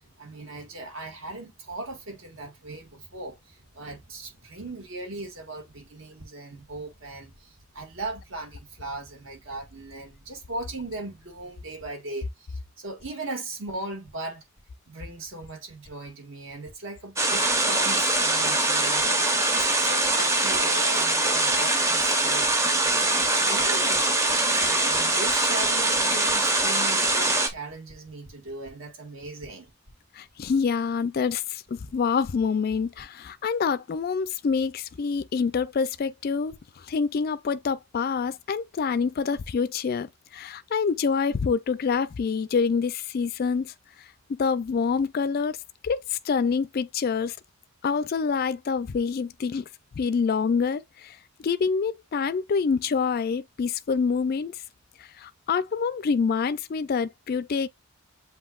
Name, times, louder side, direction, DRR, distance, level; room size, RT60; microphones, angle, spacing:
voice 1, 0.0-14.4 14.9-22.5 22.9-24.1 24.6-29.7, right 2 dB, 65° right, 1.8 m, -38 dB
sound 1, 17.2-27.5, right 2 dB, 15° right, 0.7 m, -23 dB
voice 2, 30.2-43.7 44.3-45.6 45.8-47.4 47.8-49.6 50.0-51.2 51.4-54.6 55.0-57.7, left 5 dB, 45° left, 0.3 m, -26 dB
7.7 x 2.7 x 2.3 m
head